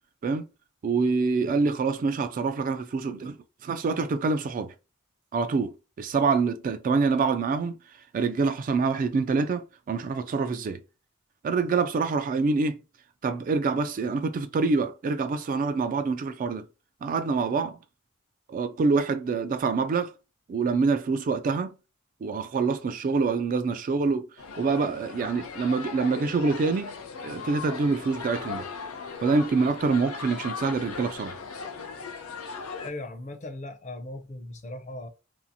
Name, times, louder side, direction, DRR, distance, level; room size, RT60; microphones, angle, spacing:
voice 1, 0.8-3.4 3.6-4.7 5.3-5.7 6.0-7.8 8.1-10.8 11.4-12.8 13.2-16.7 17.0-17.8 18.5-20.1 20.5-21.7 22.2-24.3 24.6-26.9 27.2-28.7 29.2-31.4, right 4 dB, 40° right, 0.3 m, -26 dB
sound 1, 24.4-32.9, left 5 dB, 80° left, 0.6 m, -38 dB
voice 2, 32.8-35.1, left 2 dB, 35° left, 0.5 m, -38 dB
2.6 x 2.4 x 2.7 m
head